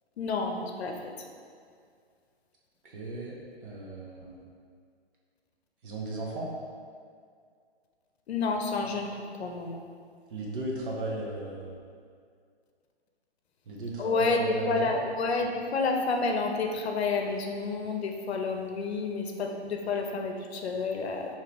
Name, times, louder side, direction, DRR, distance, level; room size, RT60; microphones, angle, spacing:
voice 1, 0.2-1.1 8.3-9.8 14.0-21.4, left 3 dB, 75° left, 3 dB, 0.7 m, -29 dB
voice 2, 2.8-3.3 3.6-4.4 5.8-6.5 10.3-11.7 13.7-15.0, right 2 dB, 55° right, -3 dB, 0.9 m, -36 dB
4.8 x 2.9 x 2.9 m, 2.2 s
hypercardioid pair, 155°, 32 cm